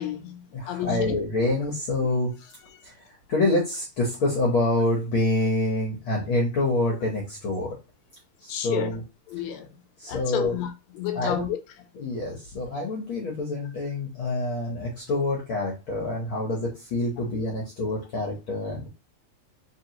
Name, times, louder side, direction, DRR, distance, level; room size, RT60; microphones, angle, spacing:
voice 1, 0.0-1.2 2.7-2.8 8.5-9.0 9.3-9.7 10.1-11.6 13.6-13.7, left 11 dB, 80° left, 1.8 m, -31 dB
voice 2, 0.5-2.3 3.3-7.8 8.4-9.0 10.0-10.5 11.2-11.4 12.0-18.9, left 2 dB, 60° left, 1.5 m, -26 dB
3.7 x 3.7 x 2.9 m
omnidirectional pair, 3.4 m